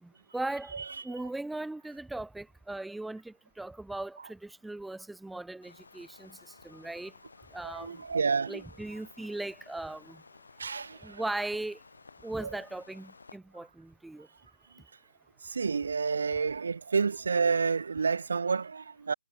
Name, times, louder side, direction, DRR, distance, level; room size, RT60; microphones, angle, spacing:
voice 1, 0.0-0.7 1.0-7.1 7.5-8.0 8.5-10.2 11.0-11.8 12.2-14.3, right 2 dB, ahead, 0.7 m, -38 dB
sound 1, 5.6-13.4, left 4 dB, 85° left, 6.0 m, -55 dB
voice 2, 7.6-8.6 10.6-11.0 15.6-19.1, right 5 dB, 70° right, 0.5 m, -29 dB
hypercardioid pair, 165°, 0 cm